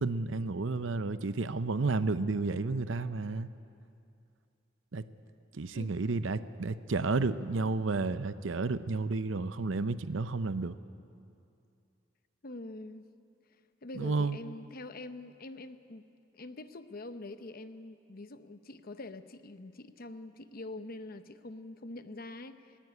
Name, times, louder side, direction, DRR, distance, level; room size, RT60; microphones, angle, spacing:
voice 1, 0.0-3.5 4.9-5.0 5.5-10.8 13.9-14.4, right 3 dB, 70° right, 13 dB, 0.7 m, -31 dB
voice 2, 12.4-13.0 13.8-16.1 16.3-22.8, left 2 dB, 50° left, 10 dB, 0.9 m, -45 dB
19.0 x 17.5 x 9.7 m, 2.5 s
head